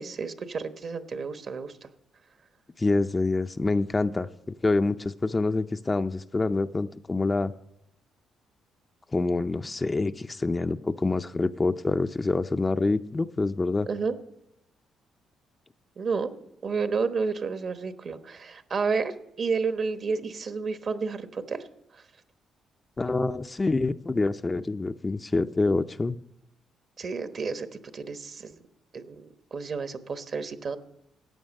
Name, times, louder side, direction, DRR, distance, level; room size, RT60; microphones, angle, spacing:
voice 1, 0.0-1.9 13.9-14.2 16.0-16.3 16.6-21.6 21.9-22.0 27.0-28.5 28.9-30.8, right 4 dB, 50° right, 9 dB, 1.1 m, -31 dB
voice 2, 2.8-7.5 9.1-13.9 23.0-26.2, left 3 dB, 25° left, 9 dB, 0.5 m, -26 dB
14.5 x 9.2 x 6.4 m, 0.80 s
cardioid pair, 90°, 0 cm